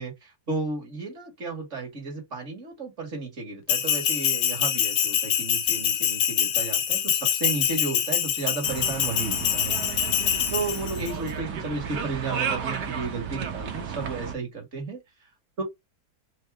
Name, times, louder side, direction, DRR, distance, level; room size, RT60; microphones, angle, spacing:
voice 1, 0.0-9.8 10.5-15.0 15.6-15.7, right 3 dB, 35° right, 2.2 m, -33 dB
Bell, 3.7-11.1, left 9 dB, 70° left, 1.3 m, -25 dB
sound 1, 8.6-14.4, right 6 dB, 65° right, 1.3 m, -33 dB
4.6 x 2.5 x 3.6 m
omnidirectional pair, 2.2 m